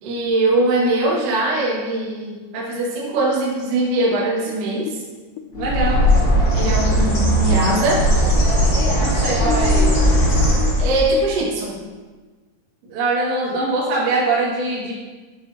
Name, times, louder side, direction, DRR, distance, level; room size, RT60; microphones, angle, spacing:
voice 1, 0.0-5.0 6.5-8.1 10.8-11.8, right 2 dB, 60° right, -5 dB, 2.4 m, -21 dB
sound 1, 4.1-7.6 7.9-12.0, left 10 dB, 85° left, 3.1 m, -31 dB
Bird, 5.5-11.1, equal, 55° left, 1.1 m, -18 dB
voice 2, 5.6-6.0 9.0-10.1 12.8-14.9, right 2 dB, 80° right, -7 dB, 4.8 m, -22 dB
12.5 x 4.7 x 2.8 m, 1.3 s
omnidirectional pair, 5.9 m